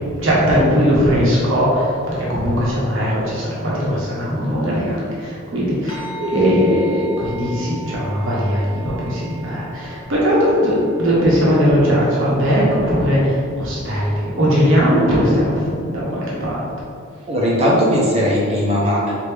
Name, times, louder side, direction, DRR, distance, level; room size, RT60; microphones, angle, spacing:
voice 1, 0.2-16.7, equal, 75° right, -6 dB, 1.1 m, -19 dB
sound 1, 5.9-14.6, right 1 dB, 25° left, 0.7 m, -39 dB
voice 2, 17.3-19.1, equal, 30° right, -5 dB, 0.8 m, -18 dB
4.8 x 2.8 x 3.4 m, 2.4 s
head